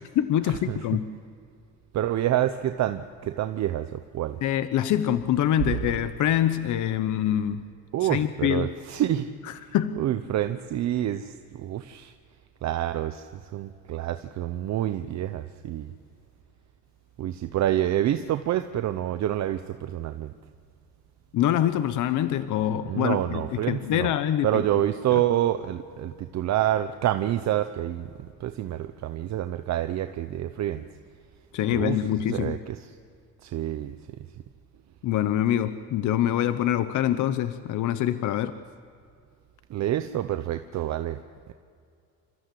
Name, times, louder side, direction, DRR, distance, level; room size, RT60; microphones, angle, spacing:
voice 1, 0.1-1.1 4.4-7.7 8.0-8.7 9.7-10.0 21.3-24.6 25.1-25.2 31.5-32.6 35.0-38.5, left 11 dB, 60° left, 11 dB, 0.9 m, -25 dB
voice 2, 1.9-4.4 5.6-5.8 7.9-9.3 10.0-12.1 12.6-15.9 17.2-20.3 22.9-24.1 24.4-30.8 31.7-32.0 32.3-32.9 33.4-34.0 39.7-41.2, right 12 dB, 55° right, 9 dB, 0.9 m, -27 dB
29.0 x 14.5 x 7.7 m, 2.3 s
cardioid pair, 130°, 33 cm